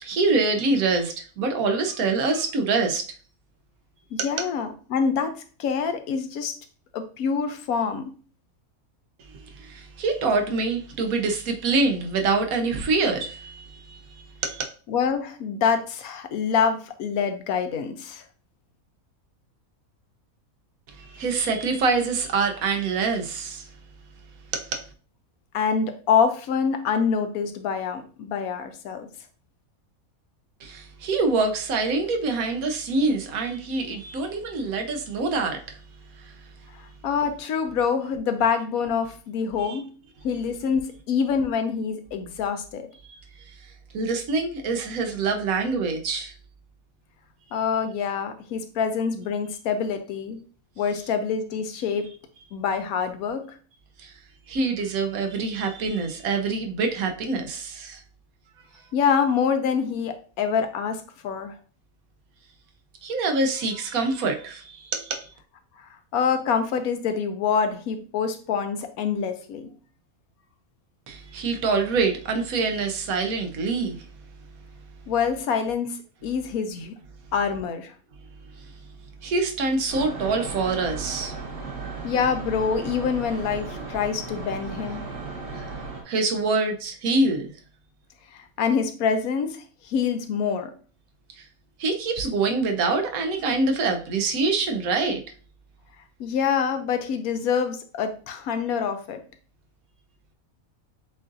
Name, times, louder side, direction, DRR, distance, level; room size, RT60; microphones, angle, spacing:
voice 1, 0.0-3.0 4.2-4.3 9.2-14.6 20.9-23.7 24.5-24.8 30.6-35.8 36.1-36.3 39.6-39.8 43.0-43.2 43.9-46.3 54.0-54.1 54.5-58.0 63.0-65.3 71.1-74.1 78.6-78.8 79.2-81.3 85.5-85.7 86.0-87.5 91.4-91.5 91.8-95.2, right 3 dB, 75° right, 1.2 m, -25 dB
voice 2, 4.1-6.5 6.9-8.1 14.9-18.2 25.5-29.1 36.7-39.9 40.2-42.9 47.5-50.4 50.8-52.1 52.5-53.5 58.9-61.5 66.1-69.7 75.1-76.9 77.3-77.9 82.0-85.0 88.3-90.7 96.2-99.2, left 6 dB, 80° left, 1.1 m, -26 dB
sound 1, 79.9-86.0, right 4 dB, 50° right, 1.4 m, -35 dB
7.5 x 2.6 x 2.5 m
omnidirectional pair, 1.5 m